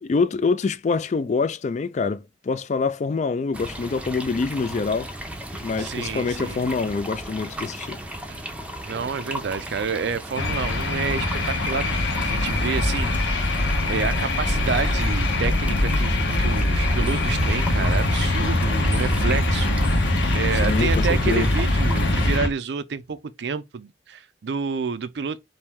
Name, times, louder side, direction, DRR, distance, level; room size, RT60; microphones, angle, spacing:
voice 1, 0.0-5.1 5.6-8.0 20.6-21.5, left 4 dB, 40° left, 0.3 m, -25 dB
sound 1, 3.5-22.4, right 1 dB, 5° right, 0.6 m, -36 dB
voice 2, 5.8-6.6 8.3-8.5 8.8-25.4, right 5 dB, 65° right, 0.4 m, -29 dB
sound 2, 10.3-22.5, left 1 dB, 90° left, 0.9 m, -22 dB
4.3 x 2.7 x 3.5 m
head